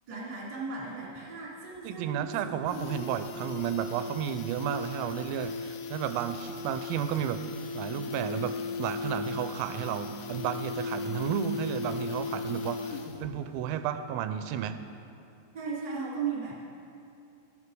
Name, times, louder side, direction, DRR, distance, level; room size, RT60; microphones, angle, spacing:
voice 1, 0.1-2.7 15.5-16.5, right 5 dB, 30° right, -6 dB, 0.9 m, -36 dB
sound 1, 1.8-1.9 2.1-2.2 2.5-13.4 13.6-13.7, left 5 dB, 90° left, 3.5 m, -37 dB
voice 2, 1.8-7.4 7.7-14.8, right 9 dB, 85° right, 10 dB, 3.2 m, -32 dB
13.5 x 9.7 x 4.8 m, 2.6 s
omnidirectional pair, 5.9 m